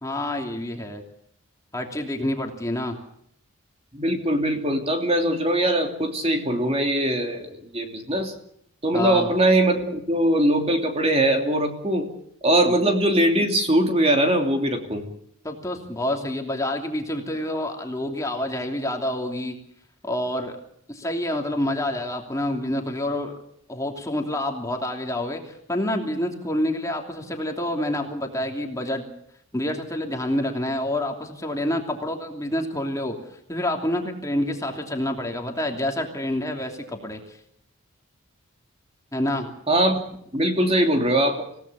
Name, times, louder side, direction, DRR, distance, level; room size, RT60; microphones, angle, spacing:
voice 1, 0.0-1.0 1.7-3.0 8.9-9.3 12.7-12.8 15.4-19.6 20.0-20.6 20.9-23.4 23.7-29.1 29.5-33.2 33.5-37.4 39.1-39.5, left 1 dB, 15° left, 2 dB, 2.9 m, -28 dB
voice 2, 3.9-8.3 8.8-12.1 12.4-15.1 39.7-40.0 40.3-41.4, right 1 dB, 25° right, 4 dB, 3.0 m, -21 dB
27.5 x 17.5 x 7.0 m, 0.71 s
head